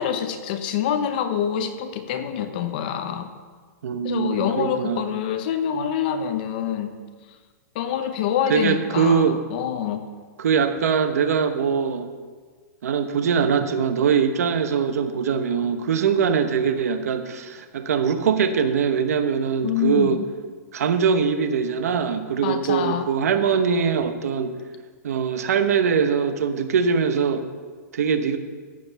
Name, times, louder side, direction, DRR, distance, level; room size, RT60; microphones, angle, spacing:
voice 1, 0.0-3.3 4.0-6.9 7.7-10.0 19.6-20.3 22.4-23.1, left 9 dB, 30° left, 8 dB, 0.8 m, -26 dB
voice 2, 3.8-5.1 8.5-9.4 10.4-12.1 12.8-20.2 20.7-24.5 25.0-27.4 27.9-28.4, right 6 dB, 60° right, 8 dB, 1.1 m, -22 dB
14.5 x 5.2 x 7.0 m, 1.5 s
hypercardioid pair, 175°, 9 cm